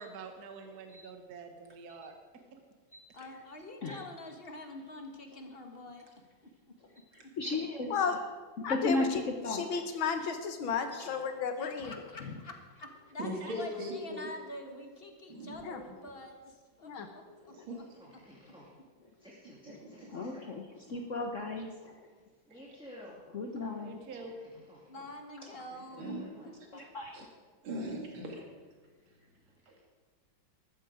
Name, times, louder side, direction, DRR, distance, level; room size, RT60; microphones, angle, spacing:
voice 1, 0.0-2.1 23.8-24.4, right 4 dB, 55° right, 5 dB, 1.5 m, -46 dB
voice 2, 0.6-1.0 2.9-3.1 3.8-4.0 6.9-8.2 8.6-10.0 10.9-11.2 11.8-11.9 12.2-12.4 16.9-17.1 17.6-17.7 20.1-22.1 23.3-24.0 25.4-25.5 26.7-27.2, left 2 dB, 50° left, 3 dB, 1.1 m, -36 dB
voice 3, 3.1-6.1 6.4-6.5 7.2-7.5 11.6-17.5 24.8-26.1 26.4-26.8, left 2 dB, 30° left, 4 dB, 1.6 m, -47 dB
voice 4, 8.6-9.2 9.5-11.9 15.6-15.8 16.8-17.1, left 6 dB, 80° left, 7 dB, 1.9 m, -33 dB
voice 5, 13.2-14.3 15.3-15.7 17.5-18.2 19.6-19.7 26.0-26.3 27.1-27.2 27.6-28.4 29.7-29.8, equal, 85° right, 1 dB, 3.0 m, -39 dB
voice 6, 18.0-18.7 19.2-20.5 22.1-22.2 22.5-23.2 24.2-24.3 24.7-25.1 25.5-26.5, equal, ahead, -6 dB, 2.4 m, -53 dB
14.0 x 13.5 x 5.0 m, 1.4 s
omnidirectional pair, 2.2 m